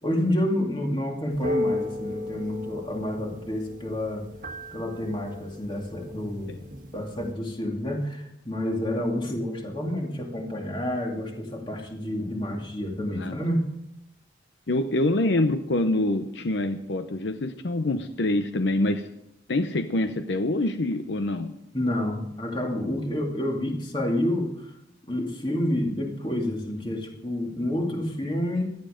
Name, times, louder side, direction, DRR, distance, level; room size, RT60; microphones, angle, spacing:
voice 1, 0.0-4.2 4.7-6.5 6.9-13.7 21.7-24.7 25.1-28.8, left 1 dB, 25° left, 1 dB, 2.4 m, -29 dB
sound 1, 1.3-7.3, left 1 dB, 45° right, 1.4 m, -35 dB
voice 2, 14.7-19.1 19.5-21.5, left 2 dB, 70° left, 8 dB, 0.7 m, -25 dB
17.0 x 12.0 x 5.1 m, 0.81 s
head